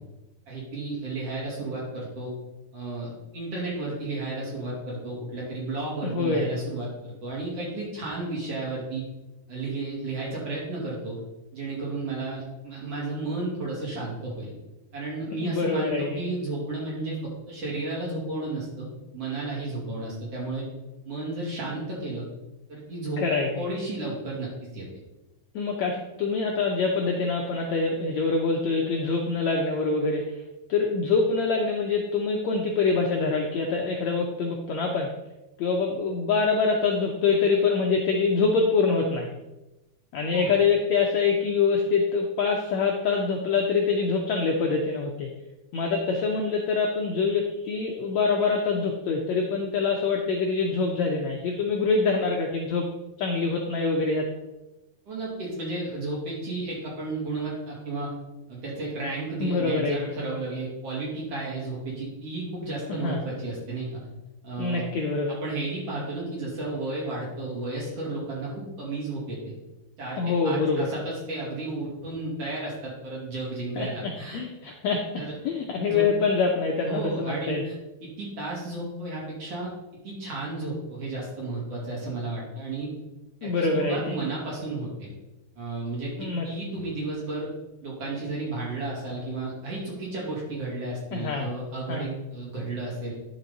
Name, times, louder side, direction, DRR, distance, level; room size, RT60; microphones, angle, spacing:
voice 1, 0.5-2.3 2.7-9.1 9.5-11.2 11.5-14.5 14.9-18.9 19.1-20.7 21.0-22.3 22.7-23.2 23.5-24.8 40.3-40.5 55.1-58.1 58.5-63.9 64.4-64.8 65.3-69.5 70.0-74.4 75.1-75.3 75.9-76.1 76.9-77.7 78.0-79.7 80.0-82.9 83.4-85.1 85.5-87.5 87.8-93.1, right 2 dB, 45° right, -5 dB, 3.5 m, -33 dB
voice 2, 6.0-6.5 15.4-16.2 23.2-23.6 25.5-30.4 30.7-35.1 35.6-39.3 40.1-45.3 45.7-52.8 53.2-54.2 59.4-60.1 62.9-63.2 64.6-65.4 70.2-70.9 73.8-73.9 74.3-77.6 83.4-84.1 86.2-86.5 91.1-91.5 91.9-92.0, left 4 dB, 85° left, 1 dB, 1.5 m, -25 dB
10.0 x 5.6 x 4.0 m, 0.99 s
omnidirectional pair, 4.2 m